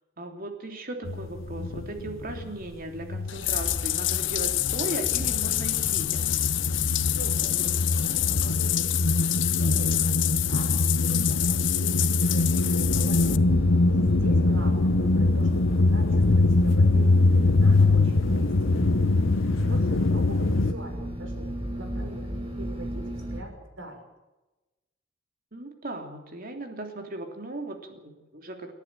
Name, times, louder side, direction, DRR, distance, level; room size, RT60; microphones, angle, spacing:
voice 1, 0.2-6.2 14.2-14.5 19.6-20.1 25.5-28.7, right 2 dB, 45° right, 4 dB, 3.1 m, -37 dB
sound 1, 1.0-2.7 3.0-20.7, left 2 dB, 85° left, 1.0 m, -23 dB
Bathtub (filling or washing), 3.3-13.4, left 16 dB, 65° left, 0.7 m, -27 dB
voice 2, 7.1-18.6 19.3-24.1, right 1 dB, 75° right, 4 dB, 6.3 m, -43 dB
sound 2, 12.8-23.4, right 1 dB, 25° right, 3.8 m, -34 dB
29.5 x 10.5 x 8.8 m, 1.1 s
head